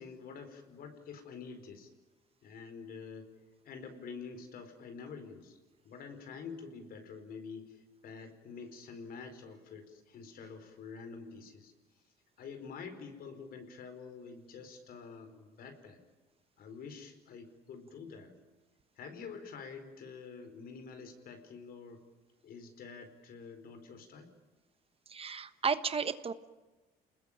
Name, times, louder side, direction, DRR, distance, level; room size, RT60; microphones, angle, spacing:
voice 1, 0.0-1.9 2.4-3.3 3.6-5.6 5.8-11.7 12.4-16.0 16.6-18.3 19.0-22.0 22.4-24.3, left 5 dB, 60° left, 8 dB, 4.7 m, -47 dB
voice 2, 25.1-26.3, right 6 dB, 35° right, 12 dB, 1.2 m, -33 dB
29.5 x 20.5 x 9.0 m, 1.2 s
cardioid pair, 110°, 17 cm